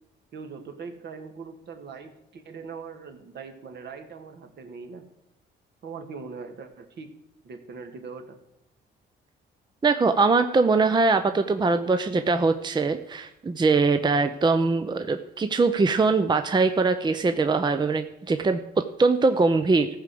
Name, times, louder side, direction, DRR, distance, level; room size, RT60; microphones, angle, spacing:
voice 1, 0.3-5.1 5.8-7.1 7.4-8.4, right 5 dB, 60° right, 6 dB, 1.8 m, -41 dB
voice 2, 9.8-19.9, right 3 dB, 20° right, 8 dB, 0.6 m, -22 dB
14.5 x 5.0 x 7.6 m, 0.84 s
cardioid pair, 90°, 20 cm